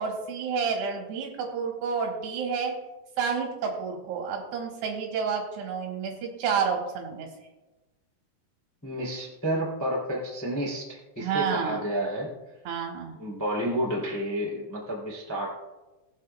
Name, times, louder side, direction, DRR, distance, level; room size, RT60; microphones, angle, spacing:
voice 1, 0.0-2.8 3.2-7.3 11.2-11.8 12.7-13.2, right 6 dB, 75° right, 1 dB, 3.3 m, -30 dB
voice 2, 8.8-12.3 13.2-15.5, right 1 dB, 5° left, -4 dB, 1.7 m, -30 dB
20.0 x 7.3 x 2.3 m, 1.1 s
omnidirectional pair, 5.0 m